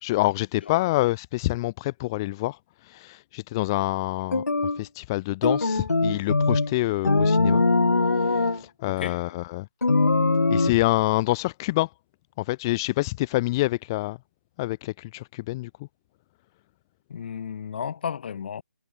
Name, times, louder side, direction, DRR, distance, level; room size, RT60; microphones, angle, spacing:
voice 1, 0.0-4.4 4.8-7.6 8.1-9.7 10.5-11.9 12.4-14.2 14.6-15.7, left 19 dB, 15° left, 0.5 m, -27 dB
sound 1, 4.3-4.8 5.4-6.7 7.0-8.6 9.8-10.7, left 3 dB, 70° left, 1.1 m, -21 dB
voice 2, 8.8-9.4 17.1-18.6, left 7 dB, 35° left, 4.9 m, -33 dB
figure-of-eight pair, 150°, 9 cm